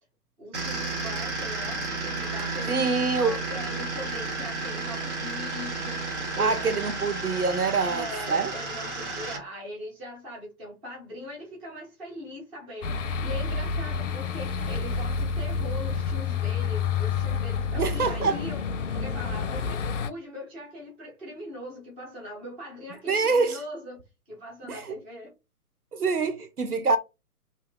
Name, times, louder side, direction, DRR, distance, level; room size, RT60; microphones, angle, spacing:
voice 1, 0.4-2.8 3.1-6.0 6.3-6.9 7.8-18.6 18.9-24.0 24.3-25.3, left 1 dB, 10° right, 0.5 m, -40 dB
sound 1, 0.5-9.4, right 3 dB, 50° right, 1.4 m, -32 dB
voice 2, 2.7-3.4 6.4-8.5 17.8-18.4 23.1-23.6 24.7-25.0 25.9-27.0, right 4 dB, 80° right, 0.8 m, -25 dB
sound 2, 12.8-20.1, left 5 dB, 55° left, 0.5 m, -29 dB
3.0 x 2.8 x 3.4 m
figure-of-eight pair, 125°, 45 cm